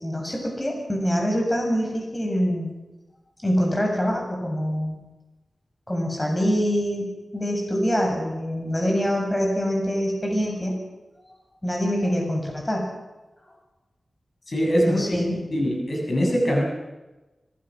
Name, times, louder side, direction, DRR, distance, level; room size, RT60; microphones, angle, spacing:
voice 1, 0.0-2.7 3.4-5.0 5.9-10.8 11.6-12.9 14.8-15.4, equal, 20° left, 1 dB, 7.6 m, -25 dB
voice 2, 14.5-15.0 15.5-16.6, equal, 50° left, 0 dB, 7.1 m, -22 dB
25.5 x 20.5 x 6.4 m, 1.1 s
wide cardioid pair, 70°, 0 cm